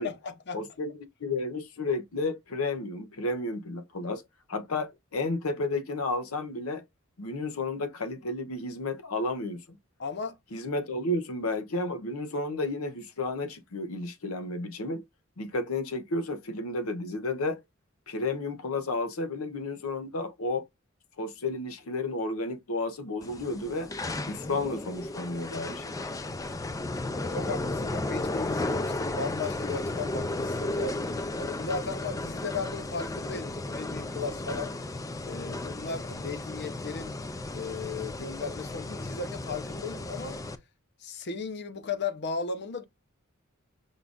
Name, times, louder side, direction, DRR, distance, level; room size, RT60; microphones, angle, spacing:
voice 1, 0.0-0.6 4.0-4.1 10.0-10.4 27.3-31.0 31.4-34.7 35.2-37.2 37.5-40.4 41.0-42.8, left 4 dB, 55° left, 0.8 m, -36 dB
voice 2, 0.5-4.2 4.5-6.8 7.2-9.8 10.5-15.0 15.4-17.6 18.1-20.7 21.2-23.9 24.3-26.0, left 2 dB, 85° left, 0.8 m, -32 dB
sound 1, 23.2-40.5, left 2 dB, 15° left, 0.4 m, -34 dB
5.5 x 2.5 x 3.5 m
head